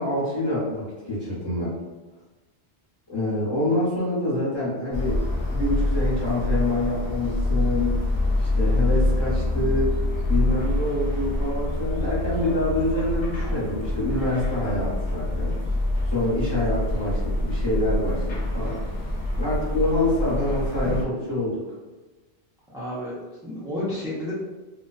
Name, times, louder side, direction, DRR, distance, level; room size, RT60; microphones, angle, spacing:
voice 1, 0.0-1.7 3.1-5.2 5.5-8.0 8.4-10.0 10.3-15.5 16.0-18.8 19.4-21.5, left 1 dB, 25° left, -8 dB, 0.9 m, -26 dB
sound 1, 4.9-21.0, left 1 dB, 65° left, 0.7 m, -26 dB
voice 2, 22.7-24.3, left 1 dB, 5° right, -9 dB, 0.4 m, -31 dB
2.4 x 2.2 x 2.4 m, 1.2 s
omnidirectional pair, 1.1 m